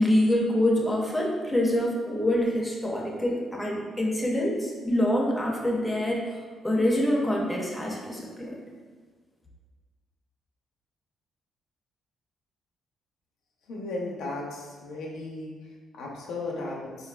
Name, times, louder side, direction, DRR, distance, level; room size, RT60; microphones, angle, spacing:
voice 1, 0.0-6.2 6.6-8.7, left 1 dB, 5° left, -3 dB, 0.6 m, -25 dB
voice 2, 13.7-15.5 16.0-16.9, left 2 dB, 85° left, -2 dB, 0.5 m, -35 dB
3.8 x 2.4 x 2.2 m, 1.5 s
cardioid pair, 90°, 0 cm